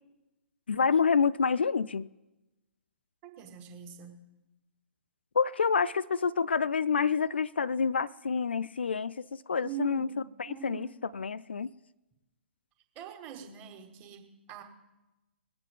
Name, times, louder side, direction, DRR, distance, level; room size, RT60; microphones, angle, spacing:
voice 1, 0.7-2.1 5.4-10.1 10.4-10.9 11.1-11.7, left 5 dB, 65° left, 0.4 m, -28 dB
voice 2, 3.2-4.2 9.6-10.2 10.5-10.9 13.0-14.6, right 9 dB, 25° right, 2.0 m, -42 dB
21.0 x 8.6 x 3.7 m
figure-of-eight pair, 120°, 6 cm